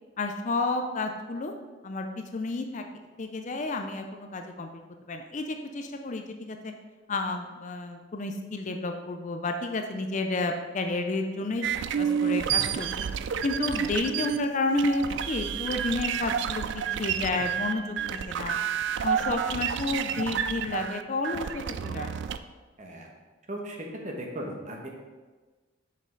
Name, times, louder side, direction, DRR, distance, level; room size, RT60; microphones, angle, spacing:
voice 1, 0.2-1.5 1.8-2.1 2.3-2.8 3.2-4.8 5.1-6.7 7.1-11.7 12.0-13.0 13.4-18.6 19.0-22.1, left 2 dB, 35° left, 5 dB, 0.4 m, -31 dB
sound 1, 11.6-22.4, right 8 dB, 60° right, 0.3 m, -30 dB
voice 2, 23.5-24.9, right 1 dB, 35° right, 0 dB, 1.1 m, -37 dB
6.4 x 5.3 x 3.8 m, 1.3 s
head